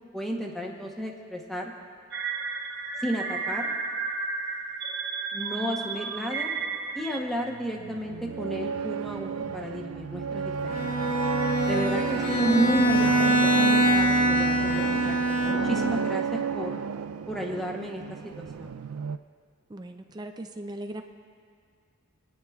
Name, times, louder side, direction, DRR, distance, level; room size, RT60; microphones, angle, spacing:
voice 1, 0.1-1.7 3.0-3.7 5.3-6.5 6.9-11.1 11.7-15.2 15.4-16.8 17.3-18.8, equal, ahead, -1 dB, 0.9 m, -32 dB
sound 1, 2.1-7.2, right 4 dB, 55° right, 0.9 m, -32 dB
sound 2, 7.5-19.2, right 6 dB, 90° right, 0.3 m, -32 dB
Bowed string instrument, 10.7-16.0, right 1 dB, 25° left, 1.1 m, -24 dB
voice 2, 19.7-21.0, right 1 dB, 20° right, 6 dB, 0.4 m, -38 dB
24.0 x 9.6 x 2.3 m, 2.1 s
head